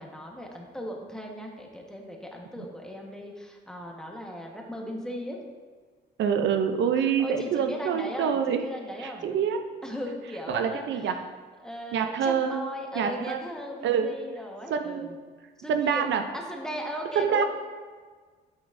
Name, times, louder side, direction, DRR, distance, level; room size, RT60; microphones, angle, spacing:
voice 1, 0.0-5.4 7.0-9.4 9.8-10.9 11.6-15.1 15.6-17.4, equal, 5° left, 0 dB, 1.2 m, -37 dB
voice 2, 6.2-8.6 9.0-9.6 10.5-11.2 11.9-13.4 13.8-14.1 14.7-15.1 15.7-16.2 17.2-17.4, right 7 dB, 70° right, 7 dB, 0.5 m, -26 dB
8.9 x 7.0 x 2.6 m, 1.5 s
cardioid pair, 90°, 20 cm